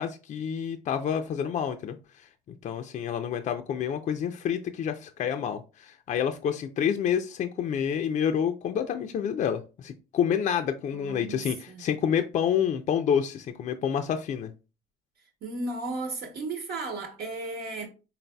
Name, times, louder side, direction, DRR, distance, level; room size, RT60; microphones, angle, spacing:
voice 1, 0.0-2.3 2.6-14.5, left 8 dB, 45° left, 0.4 m, -28 dB
voice 2, 10.9-11.4 11.7-11.8 15.4-17.9, right 2 dB, 75° right, 1.1 m, -34 dB
4.0 x 4.0 x 2.2 m
cardioid pair, 110°, 17 cm